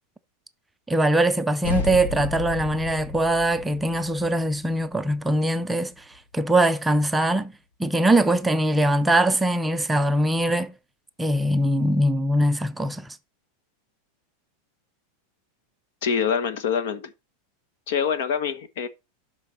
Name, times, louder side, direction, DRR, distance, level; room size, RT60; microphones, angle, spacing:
voice 1, 0.9-7.5 7.8-10.7 11.2-13.2, right 1 dB, 5° right, 0.4 m, -22 dB
sound 1, 1.6-6.4, left 5 dB, 90° left, 1.6 m, -33 dB
voice 2, 16.0-17.1 17.9-18.9, left 7 dB, 65° left, 1.3 m, -25 dB
11.5 x 5.8 x 4.2 m
supercardioid pair, 160°, 0 cm